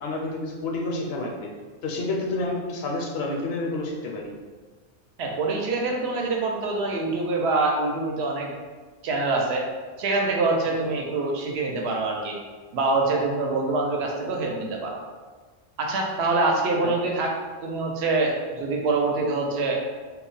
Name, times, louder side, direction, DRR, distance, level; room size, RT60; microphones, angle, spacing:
voice 1, 0.0-1.5 1.8-4.3 16.8-16.9, left 2 dB, 70° left, -1 dB, 0.8 m, -29 dB
voice 2, 5.2-8.5 9.0-9.6 10.0-12.4 12.7-15.0 15.8-17.3 17.6-19.8, right 3 dB, 75° right, 0 dB, 0.8 m, -25 dB
2.3 x 2.0 x 3.8 m, 1.4 s
omnidirectional pair, 1.1 m